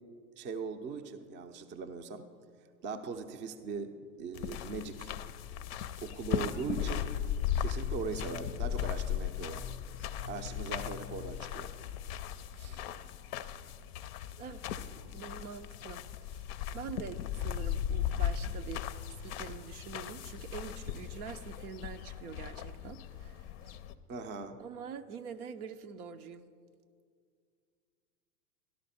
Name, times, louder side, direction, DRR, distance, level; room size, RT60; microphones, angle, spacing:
voice 1, 0.4-2.2 2.8-5.1 6.0-7.1 7.6-9.7 10.0-11.7 12.6-12.8 24.1-24.6, right 5 dB, 25° right, 7 dB, 0.6 m, -40 dB
sound 1, 4.3-23.9, left 9 dB, 40° left, 0.5 m, -37 dB
voice 2, 14.3-23.8 24.6-26.4, right 7 dB, 65° right, 9 dB, 0.7 m, -45 dB
13.0 x 11.5 x 4.2 m, 2.2 s
hypercardioid pair, 100°, 49 cm